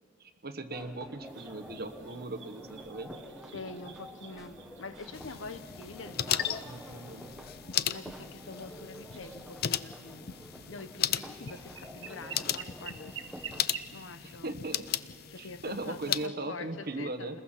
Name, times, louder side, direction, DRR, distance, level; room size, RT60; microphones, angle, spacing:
voice 1, 0.2-3.1 6.6-7.3 14.2-14.9 15.4-17.4, right 2 dB, 55° right, 9 dB, 1.2 m, -39 dB
sound 1, 0.7-13.6, equal, ahead, 1.2 m, -49 dB
sound 2, 1.2-14.2, right 6 dB, 75° right, 1.7 m, -50 dB
voice 2, 3.5-6.5 6.8-7.0 7.9-10.3 10.7-13.1 13.9-14.5 15.3-17.4, left 3 dB, 85° left, 11 dB, 1.0 m, -45 dB
sound 3, 5.1-16.3, left 11 dB, 55° left, 0.5 m, -36 dB
29.0 x 21.0 x 5.7 m, 2.1 s
head